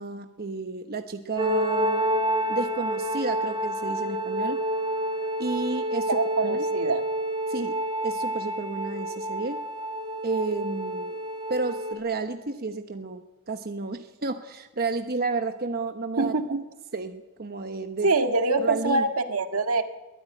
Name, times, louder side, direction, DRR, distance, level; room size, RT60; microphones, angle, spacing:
voice 1, 0.0-2.0 2.5-4.6 5.4-6.2 6.4-6.6 7.5-9.6 10.2-11.2 11.5-16.3 16.9-18.1 18.6-19.0, right 3 dB, 45° right, 7 dB, 1.1 m, -31 dB
sound 1, 1.4-11.9, right 1 dB, 20° right, 5.2 m, -28 dB
voice 2, 6.1-7.0 16.2-16.6 18.0-19.8, right 3 dB, 80° right, 7 dB, 1.8 m, -24 dB
23.0 x 17.0 x 9.3 m, 1.1 s
head